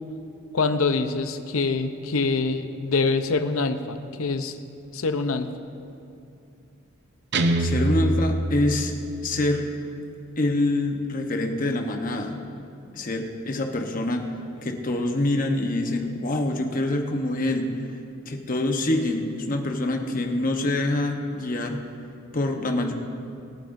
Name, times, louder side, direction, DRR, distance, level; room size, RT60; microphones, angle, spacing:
voice 1, 0.5-4.6 4.9-5.5, left 3 dB, 85° left, 9 dB, 0.7 m, -25 dB
Guitar, 7.3-9.4, right 1 dB, 55° right, 0.6 m, -24 dB
voice 2, 7.6-8.9 9.2-9.7 10.4-12.4 12.9-18.0 18.2-21.8 22.3-22.9, left 2 dB, 40° left, 3 dB, 1.0 m, -26 dB
27.0 x 9.0 x 2.6 m, 2.6 s
head